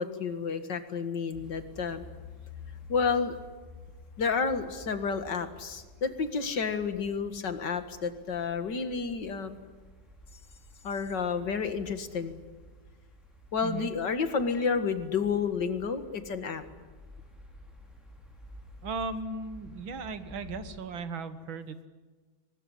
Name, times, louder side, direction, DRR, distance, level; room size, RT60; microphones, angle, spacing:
voice 1, 0.0-2.1 2.9-3.4 4.2-9.6 10.8-12.4 13.5-16.6, left 5 dB, 60° left, 10 dB, 2.4 m, -30 dB
sound 1, 1.3-20.8, left 2 dB, ahead, 4.6 m, -51 dB
voice 2, 18.8-21.9, right 4 dB, 75° right, 12 dB, 2.2 m, -37 dB
23.0 x 20.5 x 10.0 m, 1.4 s
omnidirectional pair, 2.2 m